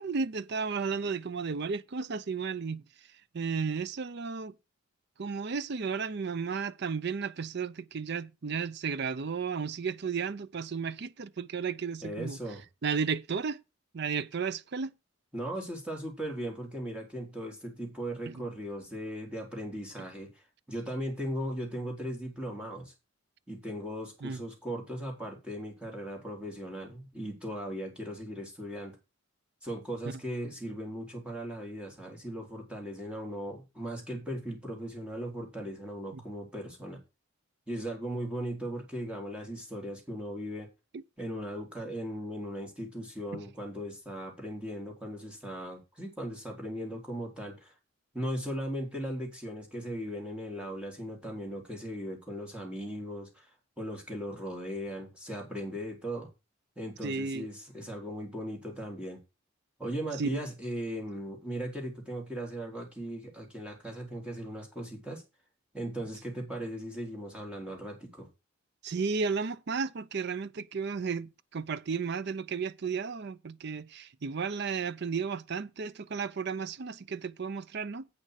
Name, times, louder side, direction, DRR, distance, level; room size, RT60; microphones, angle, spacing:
voice 1, 0.0-2.8 3.3-4.5 5.2-12.4 12.8-13.6 13.9-14.9 18.3-18.4 24.2-24.4 36.1-36.2 57.0-57.5 60.2-60.4 68.8-78.1, right 5 dB, 50° right, 0.5 m, -33 dB
voice 2, 12.0-12.6 15.3-20.3 20.7-22.9 23.5-29.0 29.6-37.0 37.7-40.7 41.2-47.7 48.1-53.5 53.8-56.3 56.8-59.2 59.8-65.2 65.7-68.3, equal, 5° right, 3.6 m, -38 dB
8.6 x 6.4 x 6.4 m
head